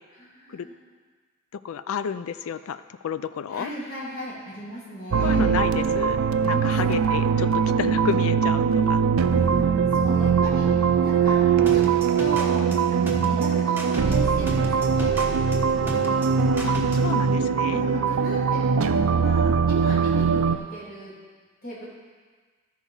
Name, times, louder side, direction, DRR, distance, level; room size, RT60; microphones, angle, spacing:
voice 1, 0.1-0.7 3.5-5.5 6.4-6.9 9.3-11.4 11.7-11.8 12.2-12.6 12.9-15.1 15.7-16.3 17.7-21.1 21.6-21.8, equal, 45° left, -6 dB, 2.8 m, -36 dB
voice 2, 1.6-3.7 5.2-9.0 16.6-17.9, left 7 dB, 85° left, 13 dB, 0.4 m, -31 dB
sound 1, 5.1-20.6, right 6 dB, 80° right, 0.4 m, -21 dB
sound 2, 11.7-17.1, right 1 dB, 10° right, 1.0 m, -35 dB
12.5 x 4.7 x 5.5 m, 1.5 s
head